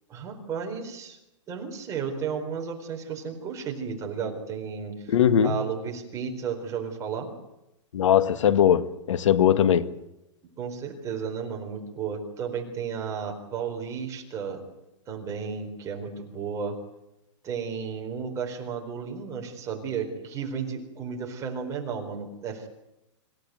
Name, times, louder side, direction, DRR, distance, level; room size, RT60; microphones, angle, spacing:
voice 1, 0.1-1.2 1.5-5.1 5.4-7.3 10.6-14.6 15.1-16.8 17.4-22.7, right 6 dB, 20° right, 4.4 m, -33 dB
voice 2, 5.1-5.5 7.9-9.9, left 9 dB, 80° left, 1.9 m, -20 dB
26.5 x 16.5 x 9.5 m
hypercardioid pair, 160°, 16 cm